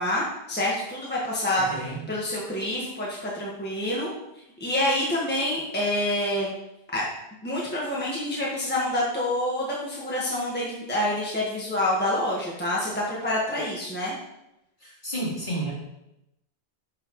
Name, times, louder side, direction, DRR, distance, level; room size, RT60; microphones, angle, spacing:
voice 1, 0.0-4.1 4.6-6.5 6.9-7.0 7.4-14.1, left 1 dB, 10° left, -5 dB, 1.5 m, -27 dB
voice 2, 1.6-2.0 14.8-15.7, right 1 dB, 45° left, -8 dB, 3.8 m, -31 dB
11.0 x 6.3 x 3.1 m, 0.87 s
omnidirectional pair, 1.1 m